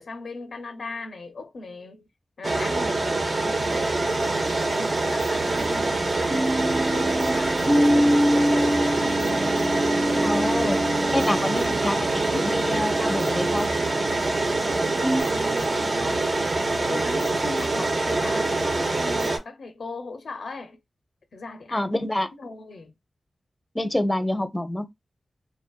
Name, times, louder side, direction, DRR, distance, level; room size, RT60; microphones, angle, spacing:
voice 1, 0.0-2.1 2.4-8.8 14.4-20.8 21.3-22.1 22.4-22.9, left 3 dB, 80° left, 0.4 m, -38 dB
sound 1, 2.4-19.4, right 2 dB, 55° right, 0.6 m, -25 dB
sound 2, 3.6-19.4, equal, 85° right, 0.9 m, -45 dB
sound 3, 5.5-15.2, equal, 20° right, 0.9 m, -26 dB
voice 2, 10.2-10.8 11.1-13.7 21.7-22.3 23.7-24.8, left 1 dB, 20° left, 0.5 m, -27 dB
2.5 x 2.2 x 2.2 m
cardioid pair, 40°, 0 cm